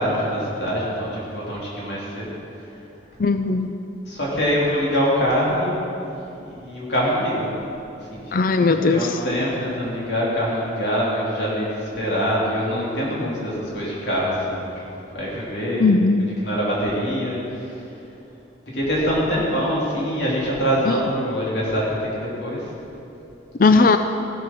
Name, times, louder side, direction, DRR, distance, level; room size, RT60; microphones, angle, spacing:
voice 1, 0.0-2.3 4.0-5.8 6.0-7.5 8.1-16.1 16.4-17.7 18.7-22.7, equal, 65° left, -6 dB, 3.2 m, -24 dB
voice 2, 3.2-3.7 8.3-9.1 15.8-16.3 23.6-24.0, left 3 dB, 45° left, 8 dB, 0.4 m, -17 dB
16.5 x 7.5 x 6.1 m, 2.8 s
head